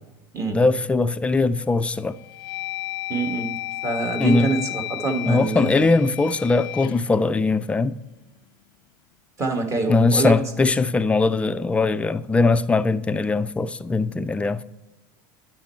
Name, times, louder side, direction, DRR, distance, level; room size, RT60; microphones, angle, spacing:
voice 1, 0.5-2.2 4.2-4.5 5.3-8.0 9.9-14.6, left 3 dB, 10° left, 0.4 m, -21 dB
sound 1, 1.1-1.6 2.1-8.2, left 18 dB, 75° left, 0.4 m, -34 dB
voice 2, 3.1-5.8 9.4-10.4, right 3 dB, 30° right, 1.5 m, -25 dB
10.0 x 6.3 x 4.4 m
supercardioid pair, 120°, 11 cm